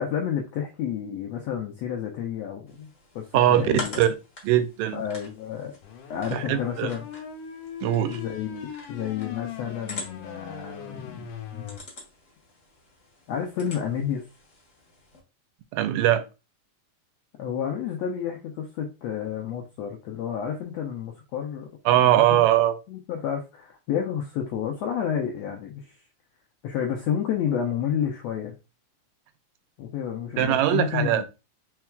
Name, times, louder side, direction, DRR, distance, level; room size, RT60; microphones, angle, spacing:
voice 1, 0.0-4.1 4.9-5.8 6.1-7.1 8.1-11.7 13.3-14.2 17.4-22.5 22.9-26.0 26.6-28.5 29.8-31.3, left 8 dB, 90° left, 1.5 m, -30 dB
sound 1, 2.7-15.2, left 3 dB, 50° left, 0.8 m, -44 dB
voice 2, 3.3-4.1 4.4-5.0 6.3-6.9 7.8-8.2 15.7-16.2 21.9-22.8 30.4-31.2, right 12 dB, 85° right, 2.2 m, -21 dB
sound 2, 5.8-11.8, left 7 dB, 70° left, 2.3 m, -40 dB
4.5 x 4.5 x 2.3 m
omnidirectional pair, 3.9 m